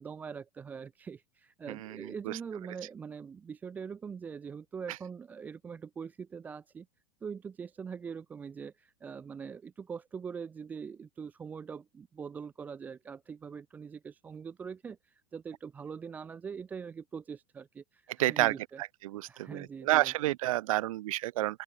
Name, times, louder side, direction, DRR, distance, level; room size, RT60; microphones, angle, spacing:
voice 1, 0.0-6.9 7.2-18.8 19.3-20.1, right 6 dB, 10° right, 0.5 m, -43 dB
voice 2, 1.7-2.4 18.2-21.6, right 16 dB, 75° right, 0.4 m, -30 dB
open air
supercardioid pair, 165°, 17 cm